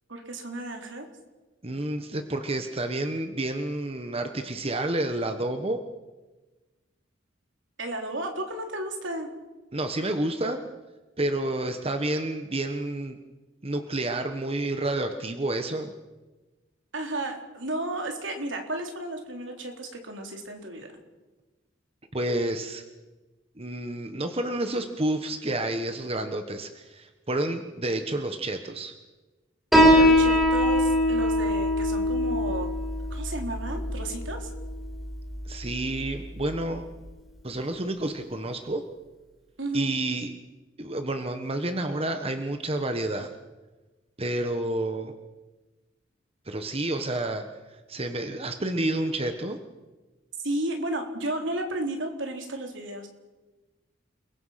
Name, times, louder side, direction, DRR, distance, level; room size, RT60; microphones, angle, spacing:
voice 1, 0.1-1.1 7.8-9.3 16.9-20.9 29.9-32.7 33.1-34.5 39.6-39.9 50.4-53.1, right 1 dB, 75° right, 3 dB, 3.8 m, -33 dB
voice 2, 1.6-5.8 9.7-10.6 11.2-13.2 13.6-15.9 22.1-22.8 23.6-28.9 35.5-36.8 37.4-38.8 39.7-40.3 40.8-43.3 44.2-45.1 46.5-49.6, right 1 dB, 30° right, 7 dB, 1.4 m, -29 dB
Piano, 29.7-36.8, equal, ahead, 5.6 m, -23 dB
30.0 x 22.0 x 5.9 m, 1.2 s
head